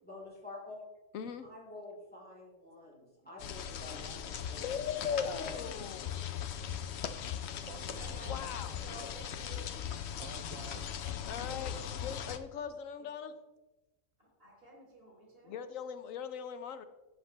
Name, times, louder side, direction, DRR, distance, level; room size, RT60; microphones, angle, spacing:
voice 1, 0.0-0.8 1.4-4.7 5.0-5.7, left 2 dB, 5° left, -5 dB, 3.6 m, -48 dB
voice 2, 1.1-1.5 4.6-6.3 8.3-9.0 11.3-11.7 12.0-13.3 15.4-16.8, left 7 dB, 90° left, 11 dB, 1.2 m, -39 dB
sound 1, 3.4-12.4, left 9 dB, 60° left, 0.9 m, -39 dB
voice 3, 5.0-5.5 7.9-9.7 13.0-13.1 14.2-15.6, right 1 dB, 45° right, -2 dB, 3.6 m, -52 dB
voice 4, 7.6-8.5 10.2-10.8 11.5-11.9, right 9 dB, 80° right, 11 dB, 1.0 m, -51 dB
13.0 x 8.0 x 3.3 m, 1.1 s
omnidirectional pair, 1.3 m